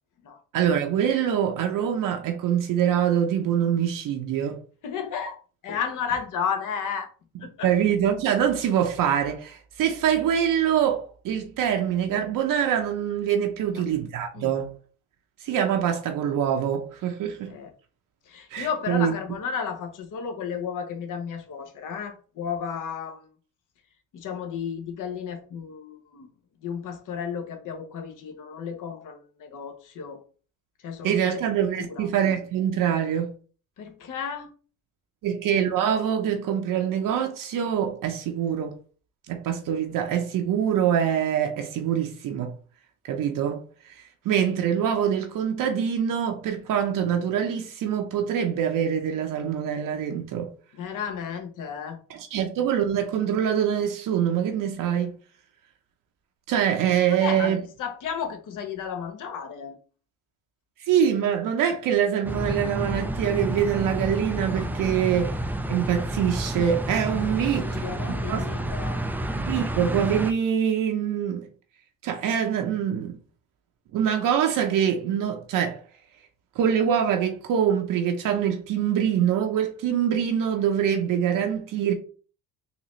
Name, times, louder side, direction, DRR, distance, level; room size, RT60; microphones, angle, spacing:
voice 1, 0.5-4.6 7.6-14.7 15.4-17.5 18.5-19.1 31.0-33.3 35.2-38.7 39.3-42.5 43.0-50.5 52.1-55.1 56.5-57.6 60.8-65.4 65.7-67.8 68.3-68.4 69.3-71.5 72.0-73.2 73.9-75.8 76.6-81.9, right 9 dB, 65° right, 0.7 m, -24 dB
voice 2, 4.8-7.1 7.4-7.7 13.6-13.8 14.3-14.5 17.4-17.7 18.3-23.3 24.1-26.3 26.6-30.2 30.8-31.4 31.7-32.1 33.8-34.5 50.7-52.0 57.1-59.7 67.1-69.1, left 7 dB, 60° left, 1.0 m, -33 dB
sound 1, 62.2-70.3, right 1 dB, 5° right, 0.3 m, -30 dB
3.9 x 2.6 x 3.1 m
supercardioid pair, 80°, 36 cm